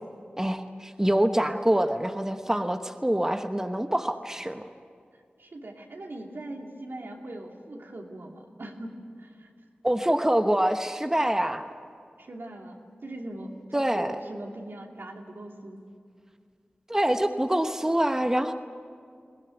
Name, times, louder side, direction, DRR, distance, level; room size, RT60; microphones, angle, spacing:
voice 1, 0.4-4.6 9.8-11.6 13.7-14.2 16.9-18.5, right 1 dB, 15° right, 7 dB, 1.0 m, -25 dB
voice 2, 5.4-9.5 12.2-15.8, right 1 dB, 75° right, 1 dB, 2.8 m, -41 dB
22.0 x 18.0 x 9.6 m, 2.2 s
wide cardioid pair, 50°, 4 cm